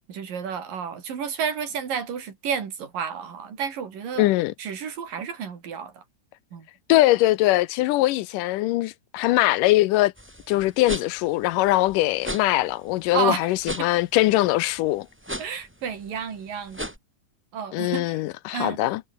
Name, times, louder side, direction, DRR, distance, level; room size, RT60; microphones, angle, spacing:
voice 1, 0.1-4.3 4.6-6.0 6.5-6.7 13.1-13.5 13.8-13.9 15.4-16.9 17.5-18.2 18.5-18.8, right 7 dB, 85° right, 5.1 m, -31 dB
voice 2, 4.2-4.5 6.9-10.1 10.5-15.1 17.7-19.0, left 17 dB, 85° left, 2.3 m, -21 dB
sound 1, 10.2-17.0, equal, 5° right, 7.1 m, -37 dB
omnidirectional pair, 3.8 m